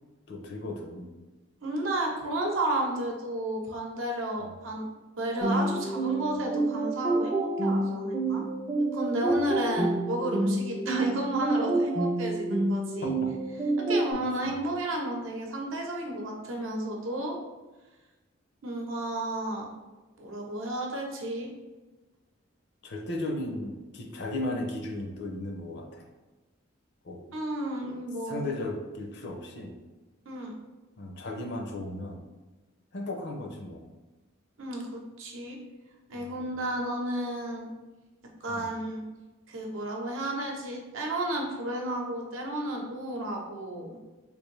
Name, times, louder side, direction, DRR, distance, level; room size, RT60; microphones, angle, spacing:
voice 1, 0.3-1.1 9.3-9.6 13.0-13.3 14.1-14.2 22.8-26.1 27.1-27.2 28.3-29.7 31.0-32.2 32.9-33.9 36.1-36.3 38.5-38.7, left 1 dB, 60° left, 2 dB, 0.6 m, -36 dB
voice 2, 1.6-4.9 5.2-8.4 8.8-13.1 13.9-17.3 18.6-19.7 20.2-21.5 27.3-28.5 30.2-30.5 34.6-35.6 36.1-37.7 38.4-39.0 39.5-44.0, right 1 dB, 80° right, 0 dB, 0.7 m, -32 dB
sound 1, 5.4-14.1, right 2 dB, 20° right, 0.4 m, -28 dB
3.3 x 2.5 x 3.2 m, 1.2 s
head